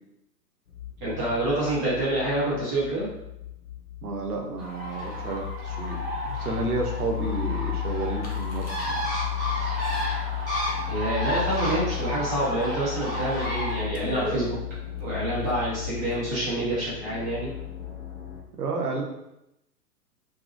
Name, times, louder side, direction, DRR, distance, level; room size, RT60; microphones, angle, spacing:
sound 1, 0.7-18.4, left 13 dB, 50° left, 0.7 m, -34 dB
voice 1, 1.0-3.1 10.9-14.6 15.0-17.5, right 1 dB, 15° right, -8 dB, 0.5 m, -27 dB
voice 2, 4.0-6.0 6.2-9.0 18.6-19.0, right 3 dB, 65° right, 0 dB, 0.8 m, -31 dB
Bird, 4.6-13.8, right 1 dB, 10° left, 1.1 m, -32 dB
sound 2, 8.2-9.0 9.4-9.5 9.8-10.3 10.6-11.1 11.4-11.9 12.3-12.4 12.7-12.8 13.3-13.5 13.9-16.3, left 1 dB, 85° left, 0.9 m, -38 dB
2.7 x 2.5 x 2.5 m, 0.86 s
figure-of-eight pair, 115°, 49 cm